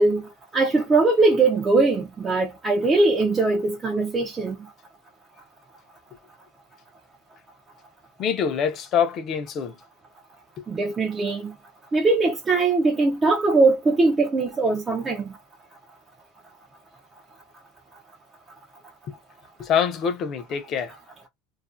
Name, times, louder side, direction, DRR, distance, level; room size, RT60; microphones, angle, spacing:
voice 1, 0.0-4.6 10.7-11.5 11.9-15.3, right 3 dB, 20° right, 0.4 m, -21 dB
voice 2, 8.2-9.7 19.6-20.9, left 7 dB, 35° left, 0.5 m, -25 dB
2.4 x 2.1 x 2.4 m
supercardioid pair, 150°, 0 cm